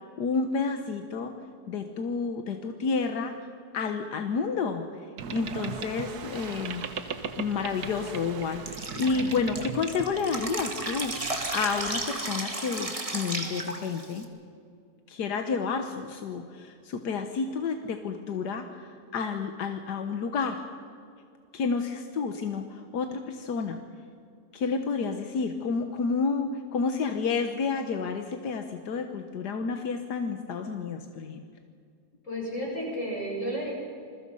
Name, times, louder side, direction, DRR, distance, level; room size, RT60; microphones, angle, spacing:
voice 1, 0.2-1.3 1.7-3.3 3.7-4.8 5.3-7.1 7.4-14.3 15.1-20.6 21.5-23.8 24.5-31.4, left 5 dB, 90° left, 6 dB, 1.7 m, -30 dB
Boat Water vehicle, 5.2-12.1, right 6 dB, 75° right, 1.7 m, -38 dB
Drip, 8.7-14.2, right 2 dB, 20° right, 1.9 m, -34 dB
voice 2, 32.2-33.7, equal, 50° left, -2 dB, 7.1 m, -32 dB
27.0 x 21.5 x 5.5 m, 2.3 s
omnidirectional pair, 1.7 m